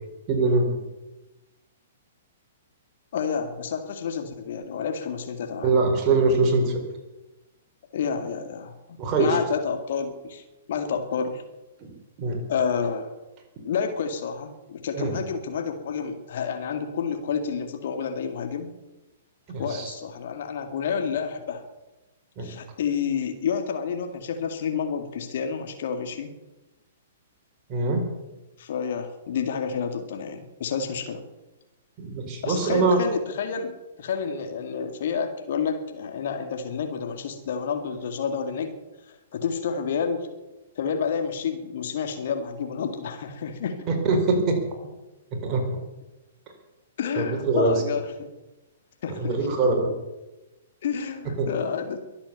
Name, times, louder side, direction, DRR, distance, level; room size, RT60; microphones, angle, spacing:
voice 1, 0.3-0.8 5.6-6.8 9.0-9.4 11.8-11.9 12.2-12.4 15.0-15.1 19.5-19.9 22.4-22.5 27.7-28.0 32.0-33.0 43.9-44.6 45.4-45.7 47.2-47.8 49.1-49.9 51.4-51.5, right 3 dB, 30° right, 2 dB, 4.7 m, -23 dB
voice 2, 3.1-5.7 7.9-10.4 10.7-11.4 12.5-13.1 13.6-18.7 19.6-21.6 22.4-26.3 28.6-31.2 32.4-38.8 39.1-40.3 40.8-43.9 47.0-48.3 49.0-49.3 50.8-52.0, left 6 dB, 50° left, 6 dB, 2.2 m, -29 dB
23.0 x 8.7 x 7.0 m, 1.0 s
figure-of-eight pair, 115°, 0 cm